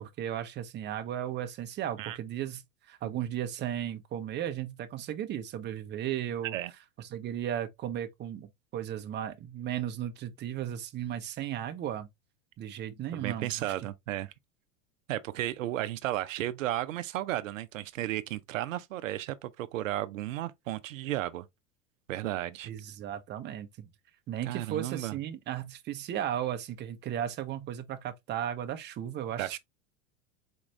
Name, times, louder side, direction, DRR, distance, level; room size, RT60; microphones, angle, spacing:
voice 1, 0.0-2.6 2.9-6.6 7.0-12.1 12.6-13.9 22.7-23.9 24.3-29.6, right 10 dB, 30° right, 0.6 m, -35 dB
voice 2, 13.1-14.3 15.1-21.5 22.1-22.7 24.5-25.2 29.4-29.6, right 14 dB, 80° right, 0.5 m, -34 dB
4.4 x 2.4 x 3.0 m
hypercardioid pair, 95°, 38 cm